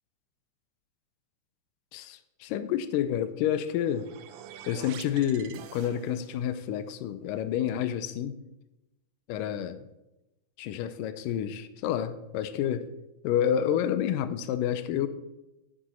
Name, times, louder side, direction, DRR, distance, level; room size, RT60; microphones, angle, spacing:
voice 1, 1.9-4.1 4.7-8.4 9.3-9.9 10.6-12.9 13.2-15.1, left 10 dB, 85° left, 12 dB, 2.2 m, -29 dB
sound 1, 3.5-6.5, right 10 dB, 85° right, 2.4 m, -47 dB
10.0 x 7.6 x 4.3 m, 0.94 s
omnidirectional pair, 3.9 m